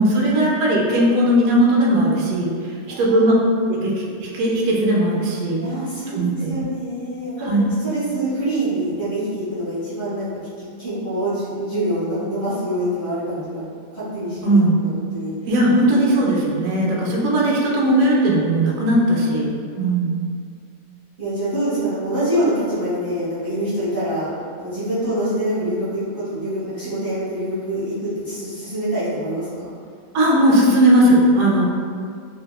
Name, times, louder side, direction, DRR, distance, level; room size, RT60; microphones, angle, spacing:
voice 1, 0.0-2.5 3.0-3.3 3.7-5.6 6.1-6.5 7.4-7.7 14.4-14.8 15.5-19.5 19.8-20.1 30.1-31.7, right 1 dB, 70° right, -4 dB, 0.8 m, -17 dB
voice 2, 5.5-13.6 13.9-15.3 15.9-16.1 21.2-24.3 24.6-29.7, right 1 dB, 35° right, -13 dB, 0.3 m, -25 dB
2.7 x 2.1 x 2.2 m, 2.2 s
omnidirectional pair, 1.8 m